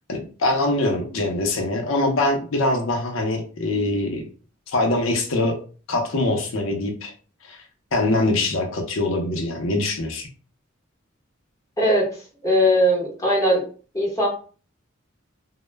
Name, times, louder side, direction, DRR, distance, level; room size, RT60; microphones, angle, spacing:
voice 1, 0.1-4.2 4.7-5.6 5.9-7.1 7.5-7.6 7.9-10.3, left 2 dB, 85° left, 2 dB, 0.6 m, -23 dB
voice 2, 11.8-12.1 12.4-13.6 13.9-14.3, equal, 15° left, -3 dB, 0.8 m, -19 dB
2.1 x 2.0 x 3.2 m, 0.38 s
head